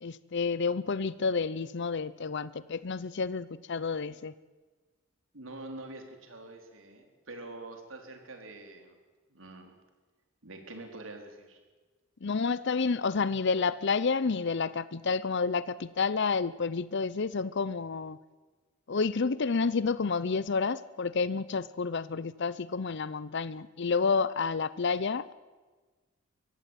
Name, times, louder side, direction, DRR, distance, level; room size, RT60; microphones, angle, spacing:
voice 1, 0.0-4.3 12.2-18.2 18.9-25.3, left 4 dB, 60° left, 17 dB, 0.7 m, -30 dB
voice 2, 5.3-9.0 9.3-9.8 10.4-11.6, right 2 dB, 85° right, 4 dB, 4.0 m, -45 dB
23.5 x 16.0 x 9.2 m, 1.3 s
head